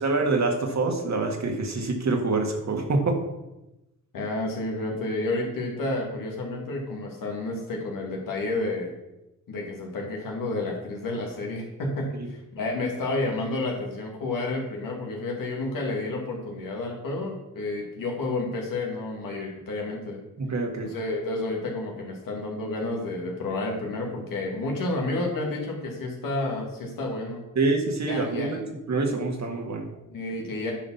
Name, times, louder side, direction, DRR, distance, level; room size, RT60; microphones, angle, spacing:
voice 1, 0.0-3.2 12.2-12.3 20.4-20.9 27.6-29.9, right 3 dB, 55° right, 3 dB, 1.9 m, -26 dB
voice 2, 4.1-9.0 9.5-20.2 20.8-27.4 28.1-28.6 30.1-30.7, left 2 dB, 85° left, 0 dB, 2.4 m, -30 dB
10.0 x 5.0 x 5.8 m, 0.95 s
cardioid pair, 65°, 33 cm